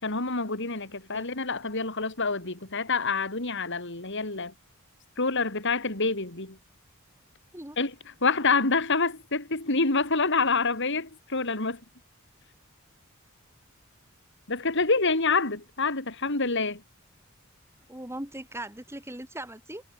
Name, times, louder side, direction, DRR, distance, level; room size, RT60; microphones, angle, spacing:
voice 1, 0.0-4.5 5.2-6.6 7.8-7.9 8.2-11.8 14.5-16.8, left 4 dB, 60° left, 4.7 m, -27 dB
voice 2, 17.9-19.8, right 1 dB, 10° right, 6.7 m, -39 dB
head